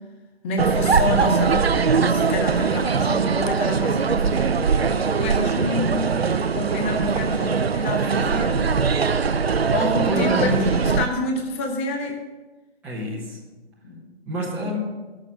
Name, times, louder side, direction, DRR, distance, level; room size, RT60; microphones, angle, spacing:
voice 1, 0.4-4.6 5.2-8.6 9.7-10.5 10.8-12.2 13.8-14.1 14.5-14.6, left 2 dB, 10° left, 3 dB, 0.7 m, -28 dB
sound 1, 0.6-11.1, right 5 dB, 75° right, 0.6 m, -21 dB
voice 2, 10.0-10.7 12.8-13.4 14.2-14.8, equal, 5° right, -8 dB, 1.4 m, -27 dB
13.5 x 6.5 x 6.2 m, 1.2 s
figure-of-eight pair, 140°, 31 cm